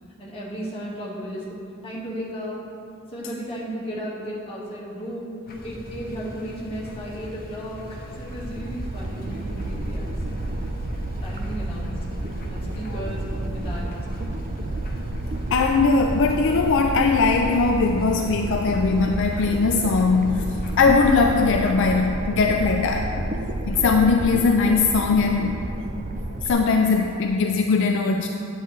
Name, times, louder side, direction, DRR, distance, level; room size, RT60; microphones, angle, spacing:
voice 1, 0.2-1.6 1.8-2.6 3.1-5.4 5.6-10.4 11.2-12.0 12.5-14.3, equal, 25° left, -6 dB, 1.7 m, -35 dB
sound 1, 5.5-21.7, equal, 45° left, 0.9 m, -39 dB
sound 2, 8.1-26.5, right 1 dB, 35° right, 0.4 m, -31 dB
voice 2, 15.5-23.1 23.7-25.6 26.4-28.3, left 4 dB, 60° left, 3 dB, 0.4 m, -20 dB
10.0 x 7.9 x 3.2 m, 2.6 s
head